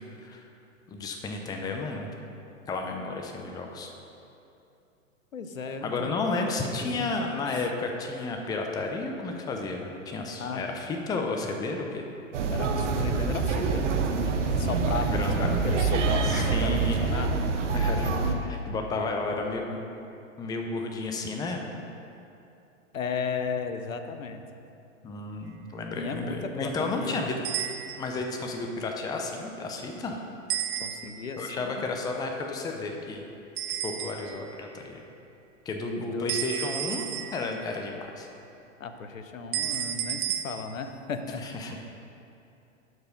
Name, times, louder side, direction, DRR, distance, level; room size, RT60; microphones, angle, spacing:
voice 1, 0.9-2.1 2.7-3.9 5.8-12.0 15.0-15.3 16.2-17.0 17.7-19.8 20.4-21.8 25.0-27.4 28.0-30.2 31.4-33.2 33.8-35.0 35.7-38.3 41.4-41.8, left 3 dB, 10° left, 2 dB, 0.6 m, -32 dB
voice 2, 5.3-6.3 6.8-7.7 10.4-10.6 12.5-13.9 14.6-17.3 22.9-24.4 26.0-27.2 30.8-31.8 35.9-36.3 38.8-41.5, left 5 dB, 80° left, 8 dB, 0.8 m, -35 dB
sound 1, 12.3-18.3, right 4 dB, 65° right, 1.0 m, -26 dB
sound 2, 27.4-28.2 30.5-31.4 33.6-34.5 36.3-37.7 39.5-40.4, right 11 dB, 45° right, 0.9 m, -32 dB
11.5 x 4.8 x 5.2 m, 2.7 s
figure-of-eight pair, 110°, 39 cm